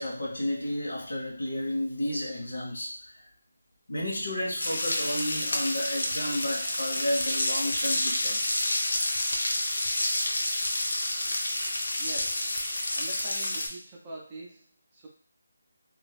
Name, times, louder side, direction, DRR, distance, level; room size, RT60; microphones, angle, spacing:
voice 1, 0.0-2.9 3.9-8.8, left 1 dB, 80° left, -3 dB, 0.9 m, -32 dB
sound 1, 4.6-13.7, left 1 dB, 55° left, 0.6 m, -29 dB
voice 2, 12.0-12.5 12.9-15.1, right 2 dB, 10° right, -4 dB, 0.4 m, -44 dB
2.3 x 2.0 x 3.2 m, 0.42 s
figure-of-eight pair, 175°, 0 cm